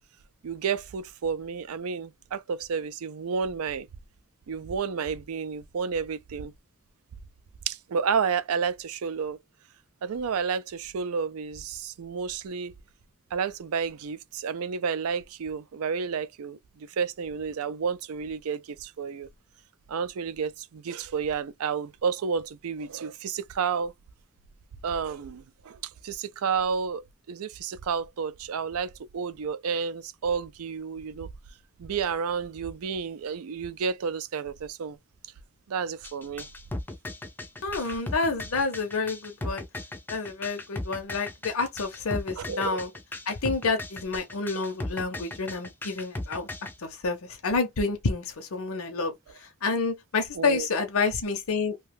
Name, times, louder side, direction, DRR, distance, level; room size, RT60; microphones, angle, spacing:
voice 1, 0.4-3.9 4.5-6.5 7.7-9.4 10.0-12.7 13.3-16.6 17.0-19.3 19.9-23.9 24.8-25.8 26.0-27.0 27.3-31.3 31.8-35.0 35.7-36.5 37.9-38.0 42.4-42.8 50.4-50.7, right 6 dB, 85° right, 0.4 m, -31 dB
sound 1, 36.0-46.7, left 2 dB, 10° left, 0.3 m, -36 dB
voice 2, 37.6-39.6 40.1-42.9 43.3-46.5 46.8-49.1 49.6-51.7, left 4 dB, 80° left, 0.7 m, -29 dB
2.7 x 2.3 x 3.3 m
head